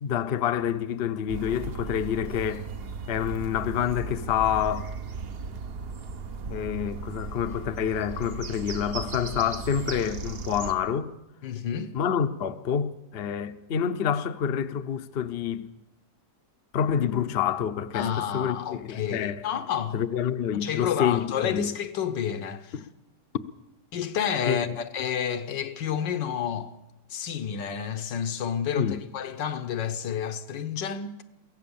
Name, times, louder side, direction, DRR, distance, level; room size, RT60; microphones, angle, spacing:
voice 1, 0.0-2.7 3.1-4.9 6.5-11.1 11.9-15.7 16.7-19.5 19.9-21.7 22.7-22.8 24.4-24.8 28.7-29.0, left 8 dB, 50° left, 0.8 m, -28 dB
sound 1, 1.3-10.7, right 5 dB, 45° right, 0.8 m, -36 dB
voice 2, 11.4-11.9 17.9-20.0 20.6-22.8 23.9-26.7 27.1-31.2, left 8 dB, 80° left, 1.6 m, -30 dB
23.0 x 16.5 x 7.1 m
omnidirectional pair, 1.9 m